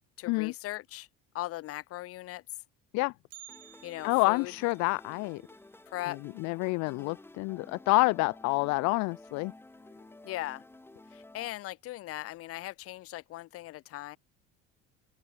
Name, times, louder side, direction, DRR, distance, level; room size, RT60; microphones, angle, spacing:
voice 1, 0.2-1.1 1.3-2.4 3.8-4.5 5.9-6.2 10.2-10.6 11.1-14.2, left 16 dB, 50° left, 1.0 m, -39 dB
Bell, 3.3-7.4 7.7-7.8 8.3-8.4 9.2-9.3 10.0-10.3 10.7-10.8, right 14 dB, 55° right, 4.6 m, -56 dB
sound 1, 3.5-11.5, left 2 dB, 10° left, 4.4 m, -53 dB
voice 2, 4.0-5.4 6.1-9.5, left 27 dB, 65° left, 0.5 m, -28 dB
open air
cardioid pair, 140°, 29 cm